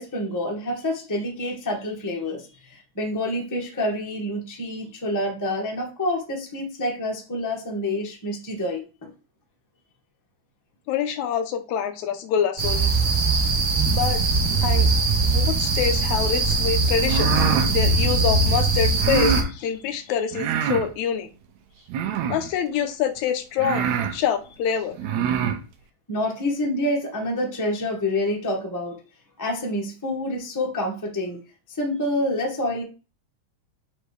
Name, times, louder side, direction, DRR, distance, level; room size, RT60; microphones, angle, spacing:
voice 1, 0.0-9.1 26.1-29.0 29.4-31.4 31.8-32.8, left 1 dB, 15° left, -1 dB, 0.6 m, -27 dB
voice 2, 10.9-13.0 13.9-14.2 14.6-14.9 15.2-17.3 17.7-21.3 22.3-25.0, left 8 dB, 90° left, 8 dB, 2.1 m, -26 dB
sound 1, 12.6-19.4, right 3 dB, 55° right, 1.6 m, -21 dB
sound 2, 17.0-17.7 19.0-19.5 20.3-20.9 21.9-22.5 23.2-23.3 23.6-24.1 24.9-25.6, right 8 dB, 80° right, 2.0 m, -24 dB
6.3 x 3.3 x 4.9 m, 0.33 s
omnidirectional pair, 3.3 m